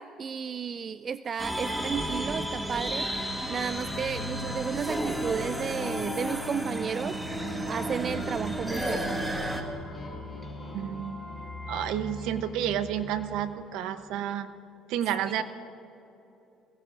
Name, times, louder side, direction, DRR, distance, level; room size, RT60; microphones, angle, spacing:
voice 1, 0.0-3.1 3.5-7.2 7.6-9.4 15.4-15.5, right 7 dB, 40° right, 13 dB, 0.3 m, -33 dB
sound 1, 1.4-9.6, right 1 dB, 10° right, 1.5 m, -32 dB
sound 2, 7.2-13.8, left 2 dB, 15° left, 3.5 m, -40 dB
voice 2, 10.7-11.2 11.7-14.5 14.9-15.4, right 10 dB, 80° right, 11 dB, 0.8 m, -30 dB
22.0 x 18.0 x 2.5 m, 2.9 s
cardioid pair, 95°, 0 cm